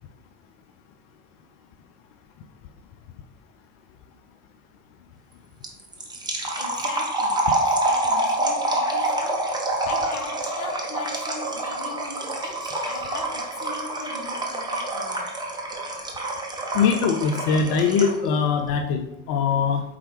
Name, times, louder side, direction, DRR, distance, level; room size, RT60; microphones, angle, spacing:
sound 1, 5.6-18.3, right 2 dB, 10° right, 0.6 m, -27 dB
voice 1, 6.5-15.3, left 4 dB, 60° left, 0.9 m, -38 dB
voice 2, 16.7-19.8, left 6 dB, 45° left, 0.4 m, -22 dB
4.4 x 3.6 x 3.0 m
figure-of-eight pair, 75°, 46 cm